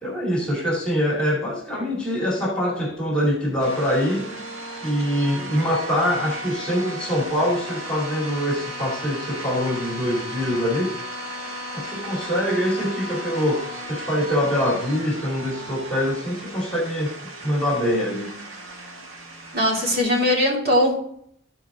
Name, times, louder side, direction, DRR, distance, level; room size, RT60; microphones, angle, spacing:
voice 1, 0.0-4.4 4.8-11.0 11.7-18.4, equal, 5° left, -4 dB, 2.4 m, -24 dB
sound 1, 3.6-20.0, right 1 dB, 90° right, 1.8 m, -35 dB
voice 2, 19.5-21.0, left 1 dB, 50° right, -3 dB, 2.7 m, -20 dB
14.0 x 4.7 x 3.6 m, 0.66 s
head